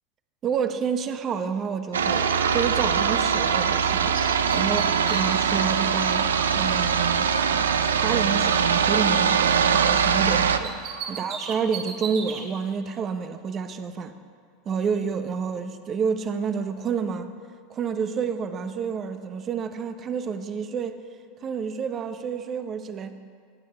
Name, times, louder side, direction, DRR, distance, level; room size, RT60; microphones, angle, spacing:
voice 1, 0.4-4.2 4.5-7.3 8.0-10.7 11.1-14.1 14.6-17.3 17.7-21.0 21.4-23.1, right 6 dB, 35° right, 9 dB, 1.2 m, -29 dB
sound 1, 1.9-10.6, right 7 dB, 85° right, 0.7 m, -22 dB
Bird, 2.3-3.8 4.1-7.6 7.9-10.0 10.3-12.4, right 5 dB, 55° right, 2.8 m, -38 dB
24.0 x 9.5 x 4.5 m, 2.1 s
hypercardioid pair, 90°, 0 cm